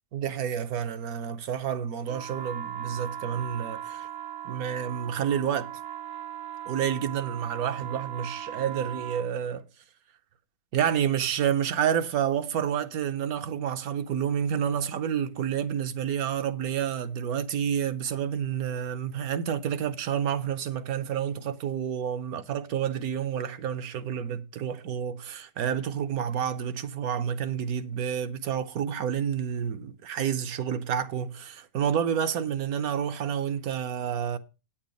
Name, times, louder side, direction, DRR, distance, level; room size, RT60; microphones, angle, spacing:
voice 1, 0.1-4.1 4.4-5.7 6.7-9.6 10.7-34.4, right 8 dB, 80° right, 1.3 m, -29 dB
sound 1, 2.1-9.3, right 10 dB, 60° right, 0.9 m, -38 dB
8.8 x 7.3 x 5.3 m
omnidirectional pair, 1.5 m